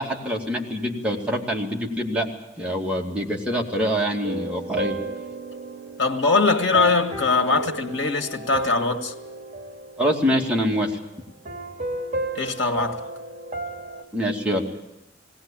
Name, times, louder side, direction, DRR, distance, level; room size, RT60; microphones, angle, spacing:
voice 1, 0.0-2.3 2.6-5.0 10.0-10.9 14.1-14.6, equal, 5° right, 2.5 m, -25 dB
sound 1, 4.2-10.9 11.5-14.0, right 2 dB, 40° right, 2.3 m, -33 dB
voice 2, 6.0-9.1 12.4-13.1, left 3 dB, 90° left, 1.9 m, -22 dB
19.5 x 17.5 x 8.8 m
head